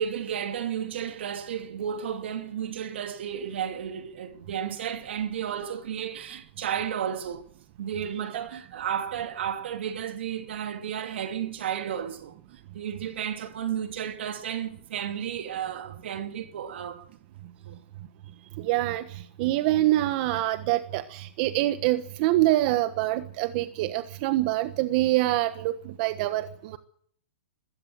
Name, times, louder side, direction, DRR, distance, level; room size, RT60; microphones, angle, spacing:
voice 1, 0.0-7.5 7.8-12.3 12.7-17.0 17.6-17.8, right 9 dB, 70° right, 2.7 m, -32 dB
voice 2, 18.6-26.8, right 16 dB, 45° right, 1.3 m, -25 dB
21.0 x 16.5 x 7.7 m
hypercardioid pair, 140°, 6 cm